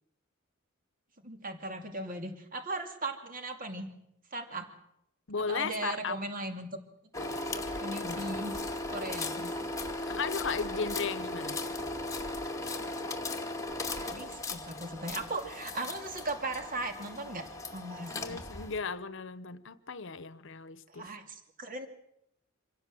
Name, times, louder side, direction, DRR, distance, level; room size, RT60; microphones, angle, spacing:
voice 1, 1.2-3.9 4.3-4.7 5.5-6.7 7.5-8.5 8.9-9.5 14.0-17.4 17.7-18.4 20.9-21.9, right 2 dB, 45° right, 2.6 m, -38 dB
voice 2, 5.3-6.2 10.0-11.6 18.2-21.1, left 5 dB, 65° left, 1.0 m, -35 dB
sound 1, 7.1-18.8, left 2 dB, 15° left, 2.3 m, -37 dB
26.5 x 17.0 x 7.7 m
head